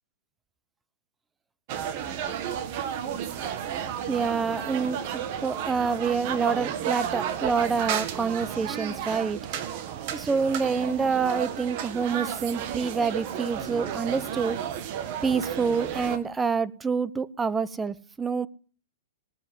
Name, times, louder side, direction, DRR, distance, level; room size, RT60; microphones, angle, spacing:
sound 1, 1.7-16.2, right 9 dB, 45° right, 1.6 m, -32 dB
voice 1, 4.1-9.4 10.1-14.6 15.2-18.5, right 5 dB, 10° right, 0.7 m, -27 dB
19.0 x 7.3 x 9.9 m
hypercardioid pair, 145°, 0 cm